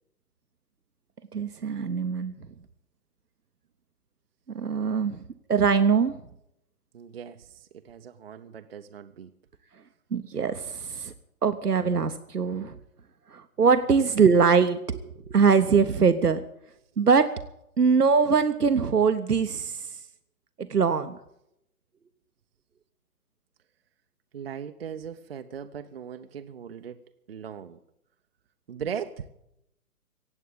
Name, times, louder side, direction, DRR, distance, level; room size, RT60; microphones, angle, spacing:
voice 1, 1.3-2.3 4.5-5.2 5.5-6.2 10.1-11.1 11.4-12.7 13.3-15.0 15.3-16.4 17.0-17.3 17.8-19.9 20.6-21.2, right 5 dB, 85° right, 0.9 m, -22 dB
voice 2, 6.9-9.3 24.3-27.0 27.3-27.8 28.7-29.2, right 7 dB, 40° right, 0.6 m, -38 dB
17.0 x 8.3 x 8.9 m
figure-of-eight pair, 130°, 45 cm